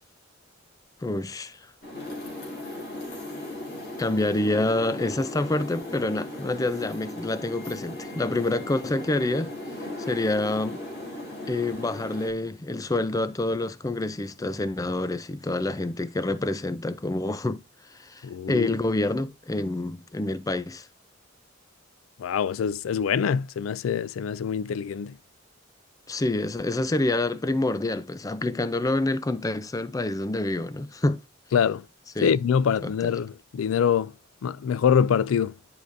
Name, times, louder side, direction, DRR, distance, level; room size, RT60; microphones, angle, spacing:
voice 1, 1.0-1.6 4.0-9.5 10.1-10.8 11.5-17.6 17.9-20.9 26.1-31.2 32.2-32.3 32.8-33.1, left 2 dB, 15° left, 0.4 m, -27 dB
sound 1, 1.8-12.3, left 1 dB, 55° left, 2.7 m, -37 dB
voice 2, 18.2-18.8 22.2-25.2 31.5-31.9 32.2-34.1 34.4-35.5, left 7 dB, 85° left, 0.4 m, -24 dB
10.5 x 4.9 x 2.5 m
head